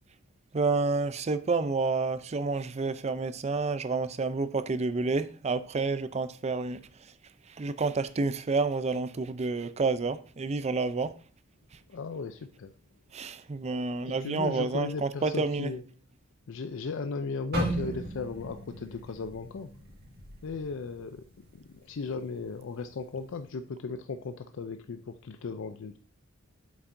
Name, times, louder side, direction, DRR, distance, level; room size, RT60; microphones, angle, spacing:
voice 1, 0.5-6.8 7.6-11.1 13.1-15.7, right 3 dB, 30° right, 0.5 m, -29 dB
voice 2, 11.9-12.7 14.1-15.8 16.5-19.7 20.4-26.0, left 4 dB, 65° left, 0.4 m, -36 dB
sound 1, 17.5-21.6 21.9-22.2 22.8-23.2, right 1 dB, 50° right, 1.9 m, -36 dB
8.6 x 7.1 x 2.6 m
head